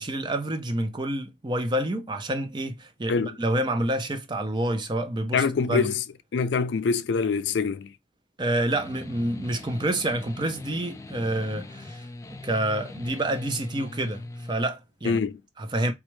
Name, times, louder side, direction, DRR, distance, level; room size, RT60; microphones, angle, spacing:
voice 1, 0.0-5.9 8.4-12.0 12.4-15.2 15.6-15.9, right 1 dB, 25° right, 0.6 m, -28 dB
voice 2, 5.3-6.0 6.3-7.9 15.0-15.4, left 5 dB, 85° left, 0.4 m, -25 dB
sound 1, 8.7-14.6, left 2 dB, 15° left, 0.3 m, -41 dB
4.3 x 2.4 x 3.1 m
head